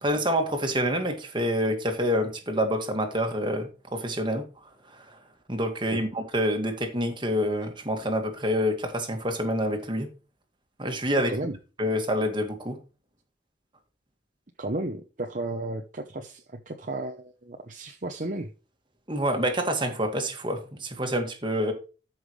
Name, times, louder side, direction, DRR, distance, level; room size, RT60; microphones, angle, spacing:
voice 1, 0.0-4.5 5.5-10.1 10.8-11.3 11.8-12.8 19.1-21.7, equal, 25° right, 2.0 m, -27 dB
voice 2, 11.3-11.6 14.6-18.5, right 2 dB, 45° right, 0.9 m, -33 dB
13.5 x 5.9 x 3.2 m
head